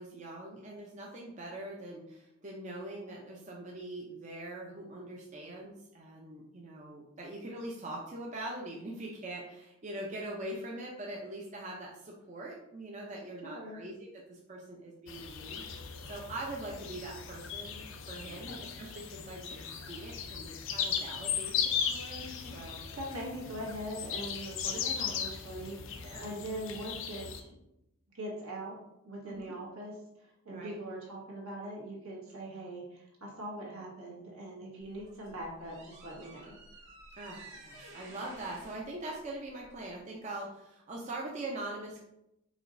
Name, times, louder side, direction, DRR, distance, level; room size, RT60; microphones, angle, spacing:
voice 1, 0.0-15.6 16.0-22.9 24.7-24.8 26.0-26.3 29.2-29.5 30.5-30.8 37.1-42.0, right 1 dB, 35° right, -2 dB, 0.5 m, -43 dB
voice 2, 13.4-13.9 18.5-18.6 22.4-27.6 28.1-28.8 29.0-36.6, right 1 dB, 75° right, -4 dB, 1.5 m, -42 dB
sound 1, 15.1-27.4, left 7 dB, 60° left, 0.4 m, -37 dB
sound 2, 34.8-40.0, right 2 dB, 55° right, 1.1 m, -53 dB
4.9 x 4.0 x 2.6 m, 0.84 s
head